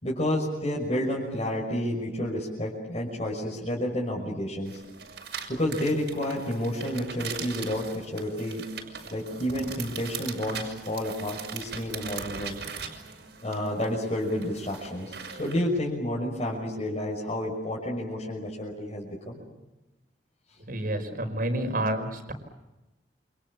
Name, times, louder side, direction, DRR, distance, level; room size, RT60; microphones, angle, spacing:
voice 1, 0.0-4.8 5.5-8.6 9.1-12.6 13.4-19.4, left 1 dB, 40° left, -3 dB, 6.0 m, -30 dB
sound 1, 4.7-15.6, right 6 dB, 75° right, 5.9 m, -40 dB
voice 2, 20.7-22.3, right 1 dB, 55° right, 7 dB, 5.2 m, -29 dB
29.0 x 27.5 x 7.3 m, 1.0 s
head